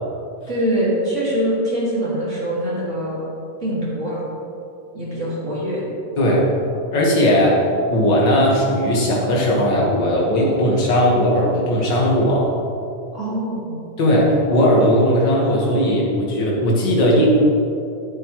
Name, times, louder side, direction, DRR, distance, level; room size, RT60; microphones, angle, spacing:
voice 1, 0.5-3.3 3.6-4.2 4.9-5.8 7.4-7.6 13.1-13.8, equal, 25° right, -7 dB, 2.0 m, -23 dB
voice 2, 6.2-6.5 6.9-7.5 7.9-12.5 14.0-17.3, equal, 45° left, -4 dB, 1.7 m, -17 dB
11.5 x 8.9 x 3.1 m, 2.7 s
omnidirectional pair, 3.9 m